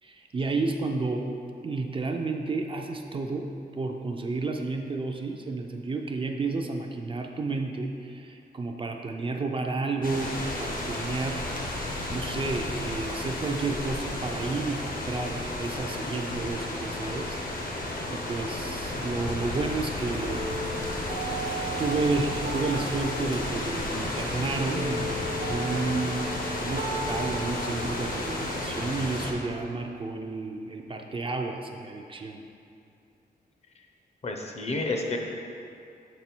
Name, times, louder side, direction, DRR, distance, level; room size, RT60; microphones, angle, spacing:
voice 1, 0.0-1.3 1.6-11.8 12.1-17.7 18.1-20.9 21.8-32.4, right 3 dB, 30° right, 3 dB, 0.4 m, -31 dB
sound 1, 10.0-29.3, left 1 dB, 60° left, 0.9 m, -33 dB
sound 2, 20.2-30.2, right 2 dB, 90° right, 0.9 m, -38 dB
sound 3, 23.5-29.0, equal, 80° left, 1.8 m, -47 dB
voice 2, 34.2-35.2, left 2 dB, 40° left, 2 dB, 0.7 m, -30 dB
6.6 x 5.4 x 4.4 m, 2.5 s
wide cardioid pair, 175°, 16 cm